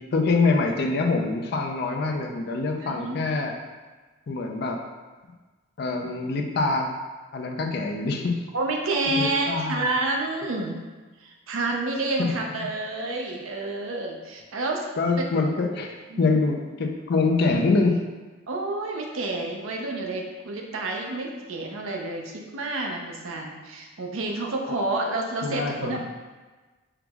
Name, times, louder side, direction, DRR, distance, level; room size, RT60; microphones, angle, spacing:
voice 1, 0.1-3.5 4.3-4.8 5.8-6.9 7.3-8.3 9.2-9.9 12.2-12.3 12.6-12.7 15.0-18.0 24.7-24.8 25.4-26.0, left 3 dB, 50° left, 2 dB, 0.4 m, -25 dB
voice 2, 2.8-3.2 8.5-10.8 11.2-14.8 15.4-15.5 16.1-16.4 18.5-26.0, right 2 dB, 85° right, 1 dB, 0.6 m, -29 dB
4.6 x 2.0 x 3.5 m, 1.3 s
head